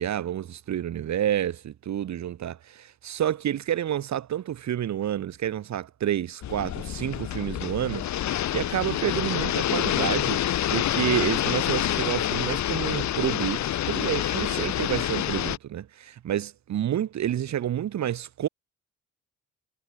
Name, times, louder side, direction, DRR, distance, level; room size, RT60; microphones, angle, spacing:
voice 1, 0.0-10.4 10.7-18.5, right 11 dB, 65° right, 2.7 m, -29 dB
sound 1, 6.4-15.6, left 12 dB, 65° left, 1.6 m, -27 dB
cardioid pair, 90°, 30 cm